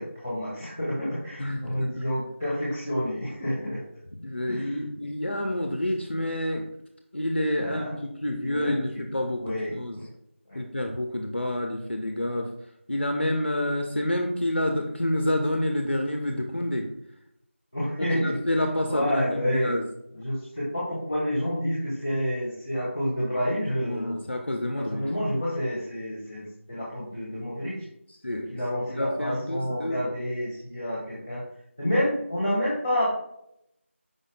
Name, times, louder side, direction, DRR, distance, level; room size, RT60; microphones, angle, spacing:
voice 1, 0.0-3.8 4.5-4.7 7.6-7.9 8.4-9.0 9.4-10.0 10.5-10.6 17.7-18.4 18.9-19.7 20.1-24.2 24.7-27.8 28.3-31.4 31.8-33.1, equal, 10° right, -13 dB, 0.5 m, -29 dB
voice 2, 1.4-1.9 4.2-6.6 7.1-10.0 10.5-12.5 12.9-16.9 18.0-19.8 23.8-25.0 28.2-28.5 28.9-30.1, left 1 dB, 55° left, 2 dB, 0.5 m, -28 dB
5.0 x 2.0 x 3.8 m, 0.77 s
figure-of-eight pair, 175°, 7 cm